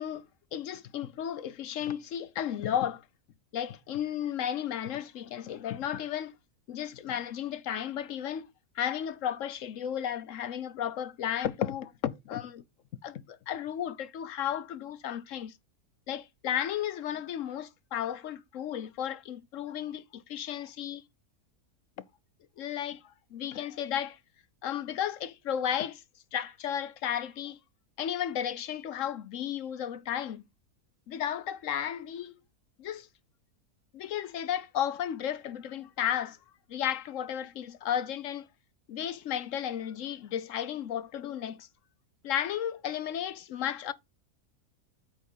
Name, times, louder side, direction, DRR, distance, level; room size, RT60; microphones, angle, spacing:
voice 1, 0.0-3.0 3.5-6.3 6.7-8.5 8.8-12.6 13.0-15.5 16.1-21.0 22.6-23.0 23.3-24.2 24.6-26.0 26.3-27.6 28.0-30.4 31.1-32.4 32.8-33.1 33.9-36.4 36.7-38.5 38.9-41.7 42.2-43.9, left 10 dB, 65° left, 0.9 m, -33 dB
8.5 x 3.6 x 5.5 m
omnidirectional pair, 1.6 m